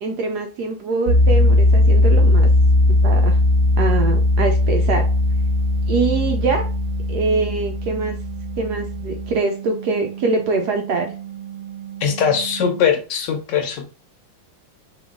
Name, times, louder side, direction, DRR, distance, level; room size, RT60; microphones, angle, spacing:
voice 1, 0.0-2.5 2.9-3.4 3.8-5.1 5.9-6.7 7.1-8.2 8.6-11.1, right 4 dB, 70° right, 3 dB, 1.0 m, -23 dB
sound 1, 1.1-12.8, left 1 dB, 85° right, 1.5 m, -19 dB
voice 2, 12.0-13.9, left 7 dB, 70° left, 5 dB, 1.2 m, -20 dB
3.6 x 3.0 x 3.6 m, 0.35 s
omnidirectional pair, 2.1 m